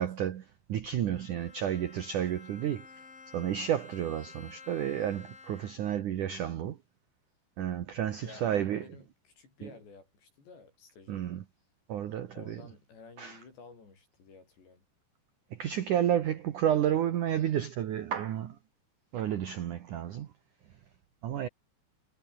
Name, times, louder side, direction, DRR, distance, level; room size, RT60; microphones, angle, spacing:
voice 1, 0.0-2.9 3.3-6.8 7.6-8.8 9.6-9.7 11.1-11.4 11.9-12.6 13.2-13.4 15.5-18.6 19.1-20.3 21.2-21.5, right 10 dB, 75° right, 1.9 m, -31 dB
Bowed string instrument, 1.0-6.1, left 4 dB, 45° left, 7.4 m, -52 dB
voice 2, 8.2-11.3 12.3-14.8, left 4 dB, 60° left, 9.8 m, -53 dB
omnidirectional pair, 5.7 m